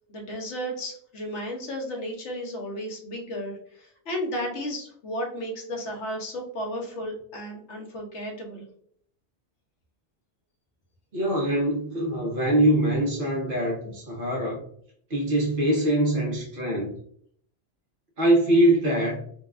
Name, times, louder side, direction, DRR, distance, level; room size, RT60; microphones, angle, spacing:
voice 1, 0.1-8.7, equal, 70° left, 1 dB, 1.1 m, -33 dB
voice 2, 11.1-14.6 15.1-17.0 18.2-19.2, right 1 dB, 50° right, -1 dB, 1.0 m, -23 dB
3.9 x 2.2 x 2.4 m, 0.62 s
omnidirectional pair, 1.2 m